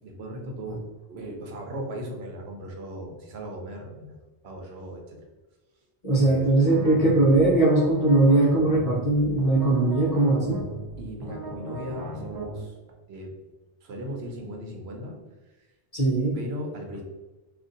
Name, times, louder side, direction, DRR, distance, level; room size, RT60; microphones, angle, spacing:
voice 1, 0.0-4.1 4.4-5.2 6.2-6.7 11.0-12.7 13.1-13.3 13.8-15.2 16.3-17.0, right 1 dB, 80° right, 1 dB, 1.0 m, -37 dB
voice 2, 6.0-10.6 15.9-16.4, right 2 dB, 40° left, -6 dB, 0.8 m, -20 dB
sound 1, 6.7-12.6, right 1 dB, 35° right, 0.4 m, -37 dB
2.6 x 2.5 x 3.8 m, 1.1 s
omnidirectional pair, 1.1 m